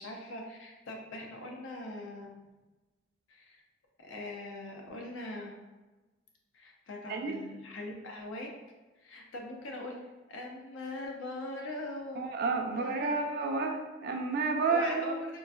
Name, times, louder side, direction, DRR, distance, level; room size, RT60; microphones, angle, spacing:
voice 1, 0.0-2.3 3.3-3.6 4.0-5.5 6.5-8.5 9.0-10.0 10.3-12.2 12.6-13.5 14.7-15.3, left 2 dB, 80° left, 0 dB, 0.6 m, -41 dB
voice 2, 12.2-15.2, right 4 dB, 50° right, 3 dB, 0.4 m, -30 dB
3.9 x 2.4 x 2.3 m, 1.2 s
head